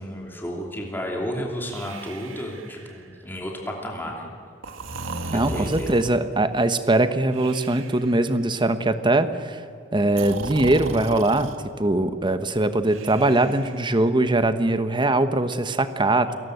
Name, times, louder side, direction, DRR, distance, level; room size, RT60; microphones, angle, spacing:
voice 1, 0.0-4.3 5.3-5.9 16.2-16.4, equal, 10° left, 0 dB, 2.8 m, -32 dB
Breathing, 1.7-3.2 4.6-6.3 7.3-8.3 10.1-11.6 12.9-14.1, right 3 dB, 75° right, 1.8 m, -36 dB
voice 2, 5.3-9.6 9.9-11.5 11.8-16.4, right 2 dB, 25° right, 11 dB, 1.1 m, -21 dB
29.0 x 18.5 x 8.0 m, 2.3 s
head